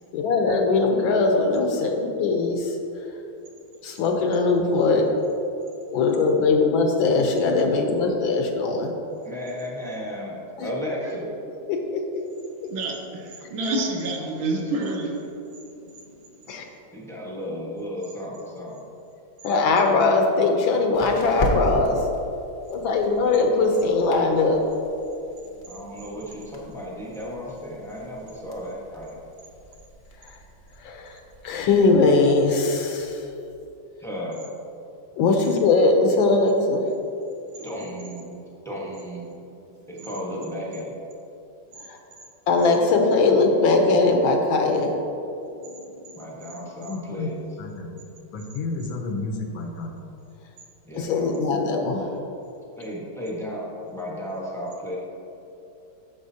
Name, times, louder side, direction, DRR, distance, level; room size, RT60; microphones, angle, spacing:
voice 1, 0.1-2.8 3.8-5.0 5.9-8.9 10.6-10.7 11.7-12.0 16.5-16.6 19.4-22.0 22.7-24.6 30.2-30.3 30.8-31.2 31.4-33.2 35.2-36.8 41.9-42.0 42.5-44.9 46.9-47.3 47.6-48.0 48.3-49.9 50.9-52.1, left 3 dB, 75° left, 3 dB, 1.4 m, -21 dB
voice 2, 9.2-11.3 12.9-13.0 13.7-13.8 14.2-15.0 16.9-18.9 25.7-29.2 34.0-34.5 37.6-39.5 39.9-40.9 46.1-47.6 50.8-51.4 52.8-53.6 53.9-55.0, equal, ahead, -5 dB, 0.7 m, -34 dB
voice 3, 12.7-15.3 25.8-26.1 37.6-38.0 40.0-40.3 45.5-46.6, right 2 dB, 75° right, 2 dB, 1.6 m, -31 dB
sound 1, 19.6-32.0, equal, 50° left, 0.5 m, -37 dB
9.7 x 7.1 x 2.8 m, 2.8 s
omnidirectional pair, 2.3 m